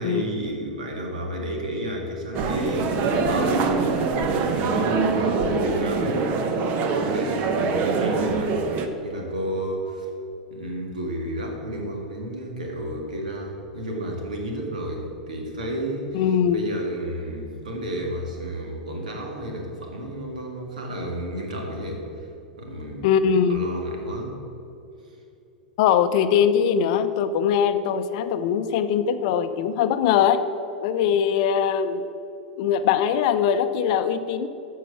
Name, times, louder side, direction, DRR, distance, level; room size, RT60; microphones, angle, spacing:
voice 1, 0.0-6.3 6.8-8.8 9.0-10.1 10.5-16.2 16.5-22.3 22.6-23.2 23.5-24.4, right 1 dB, 70° right, 1 dB, 1.9 m, -32 dB
sound 1, 2.3-8.9, right 4 dB, 40° right, 0.9 m, -24 dB
voice 2, 16.1-16.6 23.0-23.7 25.8-30.4 30.8-32.0 32.6-34.5, left 8 dB, 50° left, 10 dB, 0.6 m, -21 dB
14.0 x 4.7 x 5.9 m, 2.8 s
figure-of-eight pair, 90°, 4 cm